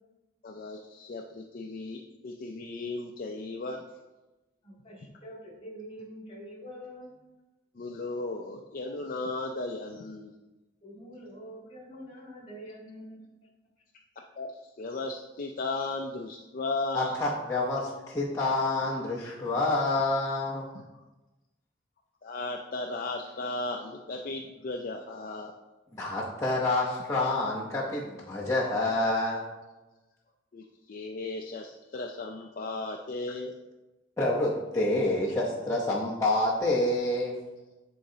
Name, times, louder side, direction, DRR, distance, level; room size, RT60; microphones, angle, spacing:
voice 1, 0.4-3.8 7.8-10.3 14.2-17.1 22.2-25.5 30.5-33.5, left 2 dB, 50° left, 2 dB, 0.4 m, -36 dB
voice 2, 4.6-7.1 10.8-13.2, equal, 30° left, -3 dB, 1.7 m, -45 dB
voice 3, 16.9-20.7 25.9-29.5 34.2-37.4, left 2 dB, 15° left, -6 dB, 0.8 m, -28 dB
9.8 x 3.9 x 2.7 m, 1.1 s
head